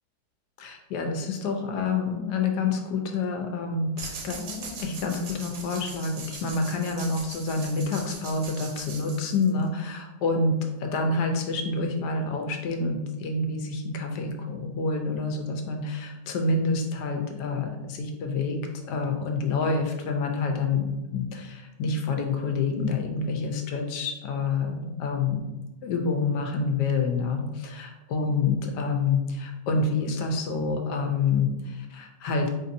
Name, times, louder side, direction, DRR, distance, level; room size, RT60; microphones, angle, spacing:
voice 1, 0.6-18.6 18.8-25.4 25.8-32.5, left 4 dB, 75° left, 4 dB, 1.1 m, -28 dB
sound 1, 4.0-9.7, right 4 dB, 70° right, 1.1 m, -41 dB
4.5 x 2.7 x 2.5 m, 1.0 s
omnidirectional pair, 1.9 m